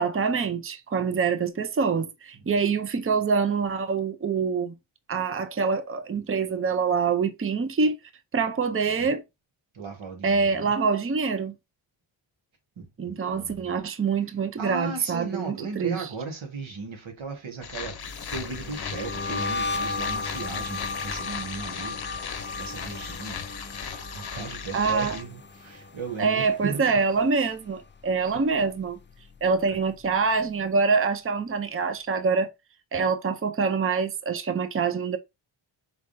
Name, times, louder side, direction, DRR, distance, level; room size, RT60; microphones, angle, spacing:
voice 1, 0.0-4.7 5.1-8.0 8.3-9.2 10.2-11.5 13.0-16.1 24.7-25.2 26.2-29.0 29.4-32.5 32.9-35.2, right 5 dB, 30° right, 0.5 m, -25 dB
voice 2, 8.8-9.1 9.7-10.7 12.8-13.7 14.6-22.3 22.6-23.4 23.8-27.0 29.7-29.8, right 4 dB, 75° right, 1.6 m, -37 dB
sound 1, 17.6-25.2, left 6 dB, 55° left, 0.7 m, -37 dB
sound 2, 18.0-27.2 27.5-27.9 28.2-29.8, left 3 dB, 25° left, 0.4 m, -36 dB
4.6 x 3.5 x 2.6 m
wide cardioid pair, 125°, 48 cm